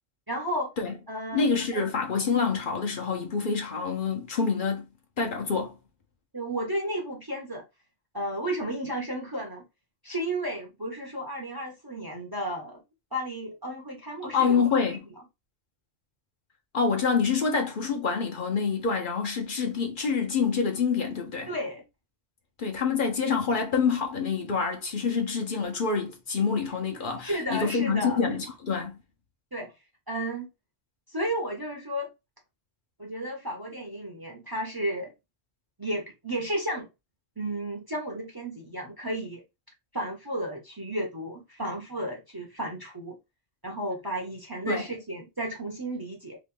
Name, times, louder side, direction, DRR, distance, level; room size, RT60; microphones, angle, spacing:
voice 1, 0.3-0.7 1.1-1.5 1.7-1.8 6.3-7.6 8.1-9.7 10.0-12.8 13.1-14.6 21.5-21.8 27.2-28.2 29.5-29.7 30.1-30.5 31.1-32.1 33.0-35.1 35.8-36.9 37.4-39.4 39.9-43.1 43.6-46.4, right 1 dB, 25° right, 0.6 m, -33 dB
voice 2, 1.3-4.9 5.2-5.8 14.3-15.1 16.7-21.5 22.6-29.0 44.7-44.9, left 5 dB, 55° left, 0.8 m, -27 dB
2.9 x 2.5 x 3.5 m
omnidirectional pair, 1.1 m